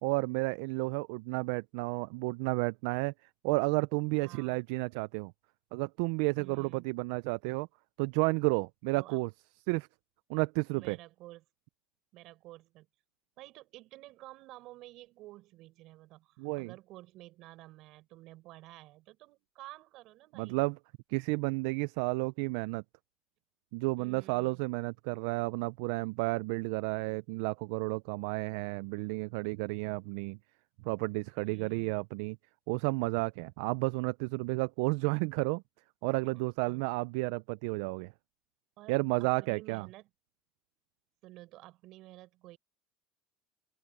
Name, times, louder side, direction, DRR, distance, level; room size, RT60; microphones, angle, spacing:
voice 1, 0.0-3.1 3.4-5.3 5.7-7.7 8.0-9.3 9.7-9.9 10.3-11.0 16.4-16.7 20.4-20.8 21.1-22.8 23.7-30.4 30.8-32.4 32.7-35.6 36.0-38.1 38.9-39.9, right 26 dB, 75° right, 0.4 m, -32 dB
voice 2, 4.2-4.6 6.4-6.9 8.9-9.2 10.7-11.4 12.1-12.9 13.4-20.6 24.0-24.6 31.4-31.9 36.3-36.8 38.8-40.1 41.2-42.6, right 17 dB, 60° right, 6.2 m, -52 dB
open air
supercardioid pair, 110°, 0 cm